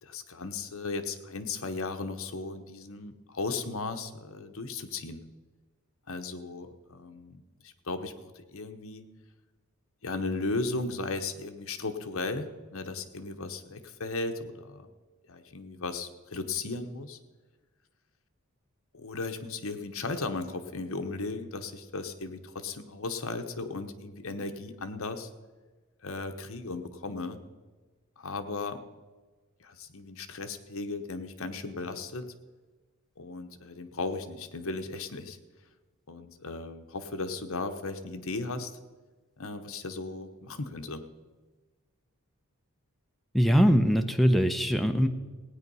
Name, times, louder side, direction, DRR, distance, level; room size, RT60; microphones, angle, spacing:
voice 1, 0.0-5.2 6.1-9.0 10.0-14.9 15.3-17.2 18.9-25.3 26.0-27.4 28.2-28.8 29.6-32.3 33.2-35.4 36.1-38.7 39.4-41.0, left 3 dB, 65° left, 7 dB, 1.0 m, -36 dB
voice 2, 43.3-45.1, equal, ahead, 5 dB, 0.7 m, -22 dB
16.5 x 9.4 x 5.5 m, 1.3 s
head